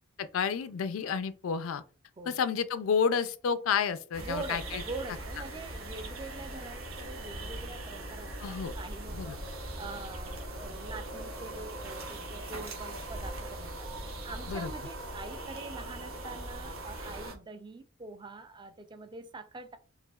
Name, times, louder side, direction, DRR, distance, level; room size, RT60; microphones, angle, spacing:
voice 1, 0.2-1.8 2.3-4.8 8.4-8.7 9.1-9.4 14.5-14.7, left 6 dB, 90° left, 0.4 m, -30 dB
sound 1, 4.1-17.3, right 1 dB, 85° right, 1.0 m, -40 dB
voice 2, 4.2-13.9 14.2-19.8, right 3 dB, 25° right, 0.4 m, -44 dB
4.8 x 2.7 x 2.3 m
head